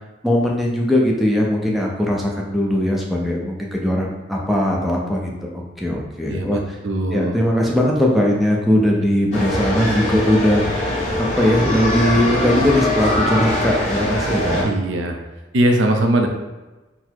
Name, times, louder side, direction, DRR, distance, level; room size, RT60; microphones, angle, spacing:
voice 1, 0.2-6.6 7.1-10.6 11.2-14.6, left 1 dB, ahead, -2 dB, 0.5 m, -19 dB
voice 2, 6.3-7.4 14.6-15.2 15.5-16.3, right 1 dB, 75° right, 3 dB, 0.5 m, -20 dB
sound 1, 9.3-14.6, left 1 dB, 40° left, 1.4 m, -22 dB
4.0 x 2.0 x 4.4 m, 1.1 s
head